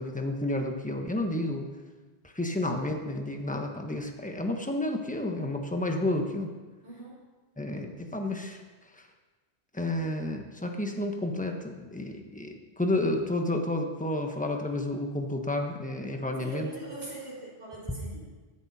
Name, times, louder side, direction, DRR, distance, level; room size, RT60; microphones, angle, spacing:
voice 1, 0.0-1.7 2.2-6.6 7.6-8.6 8.9-9.1 9.7-16.7, left 1 dB, 5° left, 3 dB, 1.2 m, -31 dB
voice 2, 6.8-7.1 16.4-18.3, right 2 dB, 65° right, -12 dB, 4.4 m, -42 dB
15.0 x 11.0 x 4.3 m, 1.3 s
omnidirectional pair, 1.1 m